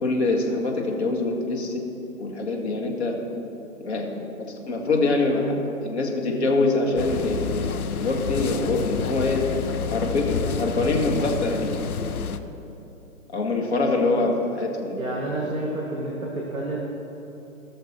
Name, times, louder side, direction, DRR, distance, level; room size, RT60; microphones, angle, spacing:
voice 1, 0.0-1.8 2.2-3.2 3.8-4.1 4.4-5.5 5.8-7.7 8.0-9.4 9.9-11.7 12.0-12.3 13.3-15.0, left 2 dB, 50° left, 1 dB, 1.8 m, -24 dB
sound 1, 7.0-12.4, left 6 dB, 80° left, 0.8 m, -29 dB
voice 2, 15.0-16.8, right 1 dB, ahead, -17 dB, 0.4 m, -29 dB
17.5 x 6.4 x 4.3 m, 3.0 s
hypercardioid pair, 150°, 43 cm